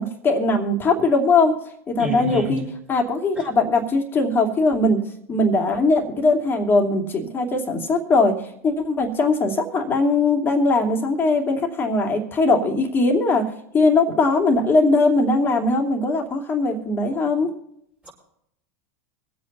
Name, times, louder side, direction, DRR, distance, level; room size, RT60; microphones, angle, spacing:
voice 1, 0.0-1.5 1.9-2.6 2.9-5.0 5.3-8.3 8.6-13.4 13.7-17.5, left 3 dB, 25° left, 2.7 m, -20 dB
voice 2, 2.0-2.6 3.3-3.5 18.0-18.1, equal, 15° right, 4.9 m, -29 dB
25.5 x 8.6 x 2.9 m
hypercardioid pair, 90°, 8 cm